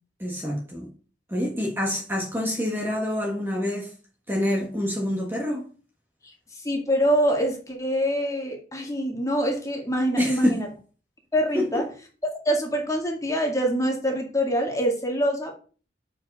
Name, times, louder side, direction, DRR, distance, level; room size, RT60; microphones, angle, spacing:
voice 1, 0.2-0.9 1.3-3.9 4.3-5.6 10.2-10.6 11.5-11.6, equal, 10° right, 1.4 m, -26 dB
voice 2, 6.6-10.7 11.3-11.9 12.4-15.5, equal, 20° left, 2.0 m, -25 dB
7.3 x 5.0 x 5.3 m
head